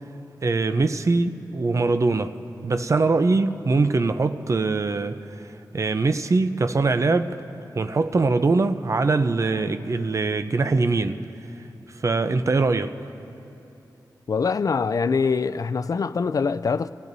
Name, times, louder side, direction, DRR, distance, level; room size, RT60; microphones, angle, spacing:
voice 1, 0.4-2.4 2.6-7.4 7.8-11.2 11.9-13.0, right 3 dB, 45° right, 0.6 m, -22 dB
voice 2, 14.3-16.9, left 5 dB, 55° left, 0.4 m, -24 dB
29.5 x 18.0 x 2.7 m
wide cardioid pair, 85°, 7 cm